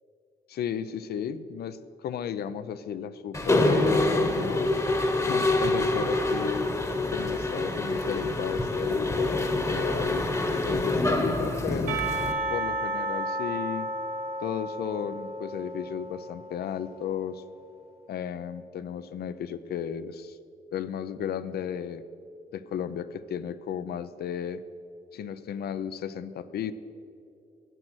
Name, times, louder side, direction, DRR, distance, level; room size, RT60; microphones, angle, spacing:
voice 1, 0.5-4.8 5.2-6.7 7.1-10.3 10.6-12.0 12.5-13.9 14.4-17.4 18.1-20.4 20.7-22.0 22.5-24.6 25.1-26.7, left 8 dB, 75° left, 13 dB, 0.5 m, -34 dB
Mechanisms, 3.3-12.3, left 2 dB, 20° left, 1.0 m, -26 dB
Percussion / Church bell, 11.9-17.1, right 1 dB, 65° right, 1.8 m, -33 dB
12.0 x 8.9 x 6.2 m, 2.6 s
cardioid pair, 100°, 16 cm